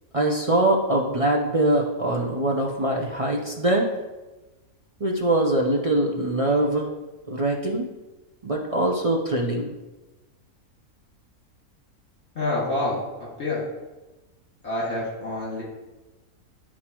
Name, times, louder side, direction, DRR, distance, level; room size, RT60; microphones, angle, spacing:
voice 1, 0.1-3.9 5.0-6.9 7.3-7.9 8.4-9.7, right 1 dB, 45° right, -1 dB, 0.4 m, -23 dB
voice 2, 12.3-13.6 14.6-15.6, left 2 dB, 45° left, -6 dB, 2.4 m, -27 dB
11.0 x 4.3 x 3.0 m, 1.1 s
omnidirectional pair, 1.5 m